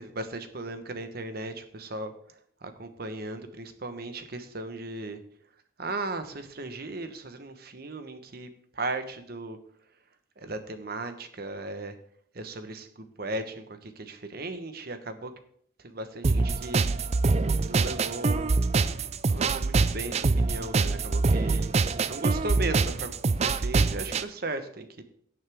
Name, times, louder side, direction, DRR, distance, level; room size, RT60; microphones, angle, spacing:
voice 1, 0.0-5.2 5.8-9.6 10.4-11.9 12.3-15.3 15.8-16.9 17.6-18.5 19.3-21.7 22.1-25.0, right 2 dB, 50° right, 9 dB, 1.1 m, -37 dB
sound 1, 16.2-24.2, right 3 dB, 35° right, 0.4 m, -25 dB
17.5 x 6.5 x 3.5 m, 0.64 s
head